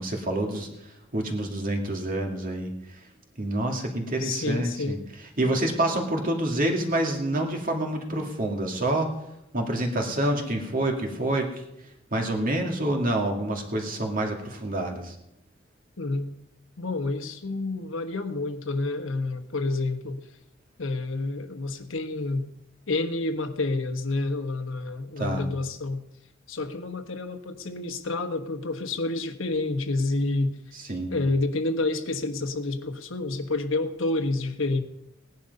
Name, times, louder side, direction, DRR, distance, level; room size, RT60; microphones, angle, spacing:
voice 1, 0.0-3.0 3.4-5.0 5.4-9.1 9.5-11.6 12.1-15.2 25.2-25.5 30.7-31.2, right 1 dB, 45° right, 2 dB, 2.3 m, -27 dB
voice 2, 4.2-5.0 16.0-16.3 16.8-20.2 20.8-22.5 22.9-26.0 26.5-30.6 31.1-34.8, left 2 dB, 75° left, 7 dB, 1.3 m, -29 dB
17.5 x 10.5 x 5.4 m, 0.85 s
head